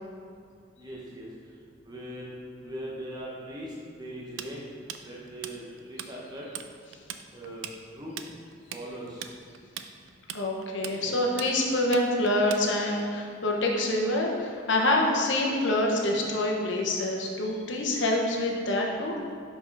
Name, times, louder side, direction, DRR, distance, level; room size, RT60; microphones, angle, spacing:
voice 1, 0.8-1.3 1.8-2.2 2.6-3.7 4.0-4.6 5.0-5.6 5.9-6.4 7.3-7.6 7.9-8.2 8.7-9.2 11.0-11.2, right 1 dB, 20° right, -5 dB, 1.0 m, -40 dB
Tools, 4.4-6.1 6.4-6.7 6.9-13.0, right 9 dB, 90° right, 0.4 m, -39 dB
voice 2, 10.3-19.2, left 1 dB, 75° left, 0 dB, 1.1 m, -26 dB
6.1 x 5.4 x 4.8 m, 2.3 s
head